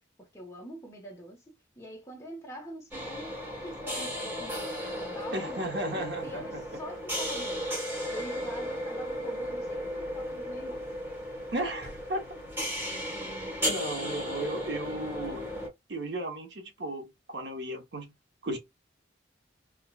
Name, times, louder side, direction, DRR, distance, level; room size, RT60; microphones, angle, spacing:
voice 1, 0.2-7.6 8.1-10.9, right 1 dB, 15° left, 1.0 m, -45 dB
sound 1, 2.9-15.7, equal, 15° right, 1.3 m, -35 dB
voice 2, 5.3-6.6 11.5-12.2 13.6-15.5 15.9-18.1 18.4-18.6, right 1 dB, 65° right, 0.9 m, -35 dB
4.6 x 2.2 x 2.3 m
head